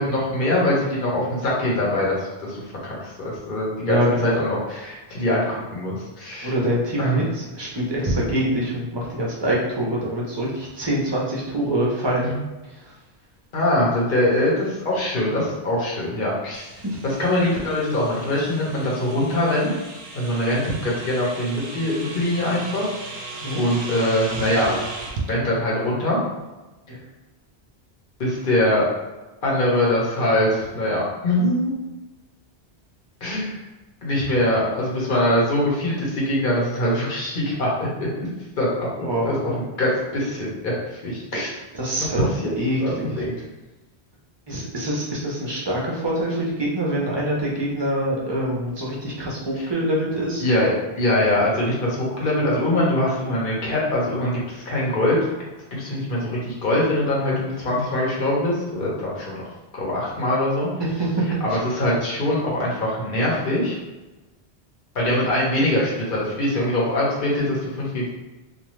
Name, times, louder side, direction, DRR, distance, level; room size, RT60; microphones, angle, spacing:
voice 1, 0.0-6.5 7.0-7.2 12.2-12.4 13.5-16.7 17.0-19.8 20.1-22.9 23.6-24.7 25.3-26.2 28.2-28.9 29.4-31.7 33.2-33.6 34.0-37.7 38.0-38.1 38.6-38.9 39.2-40.7 41.0-41.5 42.2-42.5 42.8-43.3 50.4-55.2 55.7-60.7 61.4-63.8 64.9-68.1, left 1 dB, 55° left, -5 dB, 1.0 m, -23 dB
voice 2, 3.8-4.4 6.4-12.3 16.8-17.0 23.4-23.6 26.9-27.0 39.0-39.5 41.3-41.4 41.8-42.3 42.6-43.2 44.5-50.4, right 1 dB, 30° right, -4 dB, 0.6 m, -25 dB
sound 1, 16.5-25.3, right 2 dB, 75° right, 0.8 m, -36 dB
2.5 x 2.3 x 3.0 m, 1.1 s
omnidirectional pair, 1.1 m